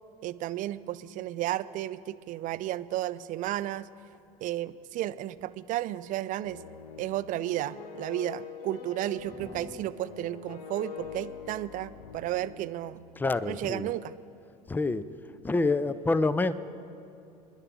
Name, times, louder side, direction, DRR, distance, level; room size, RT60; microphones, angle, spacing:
voice 1, 0.2-3.9 4.4-6.6 7.0-13.0 13.5-14.1, right 14 dB, 40° right, 16 dB, 0.5 m, -33 dB
sound 1, 6.4-13.4, left 7 dB, 75° left, 0.9 m, -44 dB
voice 2, 13.1-13.9 14.7-15.1 15.4-16.5, left 3 dB, 10° left, 15 dB, 0.5 m, -27 dB
27.0 x 11.0 x 3.7 m, 2.7 s
hypercardioid pair, 75°, 20 cm